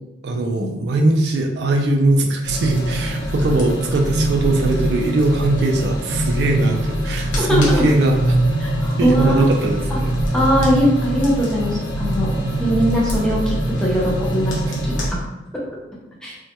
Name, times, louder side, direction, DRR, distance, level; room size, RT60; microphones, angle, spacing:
voice 1, 0.2-8.4 9.0-10.1, right 2 dB, 60° right, 2 dB, 0.3 m, -20 dB
sound 1, 2.5-15.1, right 1 dB, 85° left, 0.7 m, -23 dB
voice 2, 7.3-7.8 8.6-9.5 9.9-10.0 10.3-12.3 12.6-15.6 16.2-16.3, equal, 5° left, -5 dB, 0.5 m, -21 dB
2.2 x 2.1 x 2.8 m, 1.0 s
head